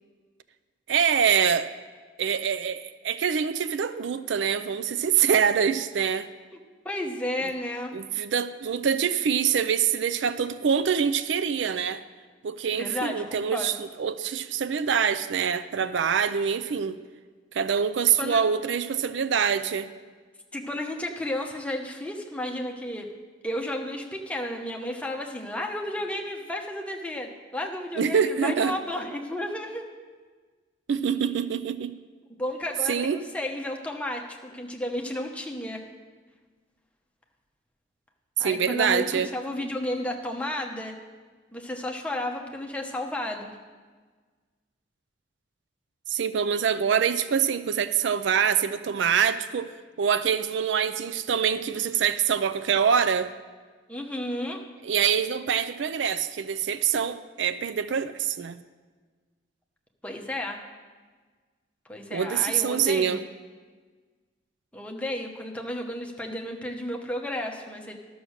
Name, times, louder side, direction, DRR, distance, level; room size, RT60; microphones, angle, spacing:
voice 1, 0.9-1.7 2.2-6.3 7.9-12.0 12.4-17.0 17.5-19.9 28.0-28.7 30.9-31.9 32.9-33.2 38.4-39.3 46.1-49.7 50.0-53.3 54.8-58.6 62.1-63.2, right 7 dB, 75° right, 14 dB, 0.4 m, -25 dB
voice 2, 6.8-7.9 12.7-13.7 18.2-18.4 20.5-23.1 23.4-29.9 32.4-35.8 38.4-41.0 41.5-43.5 53.9-54.6 60.0-60.6 61.9-63.2 64.7-67.9, left 1 dB, 5° left, 1 dB, 0.9 m, -32 dB
12.5 x 6.3 x 6.4 m, 1.4 s
head